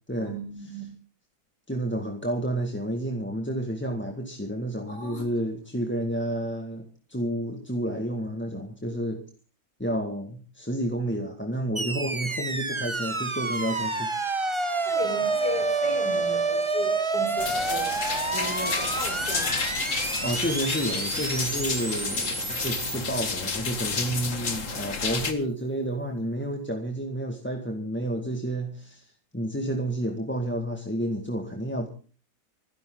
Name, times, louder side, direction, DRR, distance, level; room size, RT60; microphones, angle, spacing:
voice 1, 0.2-0.8 4.9-5.2 14.9-17.9 18.3-19.5, left 1 dB, 65° left, 6 dB, 5.2 m, -36 dB
voice 2, 1.7-9.2 9.8-14.1 20.2-31.9, right 1 dB, 5° left, 3 dB, 1.7 m, -30 dB
sound 1, 11.7-24.0, right 3 dB, 20° right, 1.1 m, -29 dB
sound 2, 17.4-25.3, left 5 dB, 45° left, 2.0 m, -31 dB
25.5 x 11.0 x 3.8 m, 0.38 s
omnidirectional pair, 2.0 m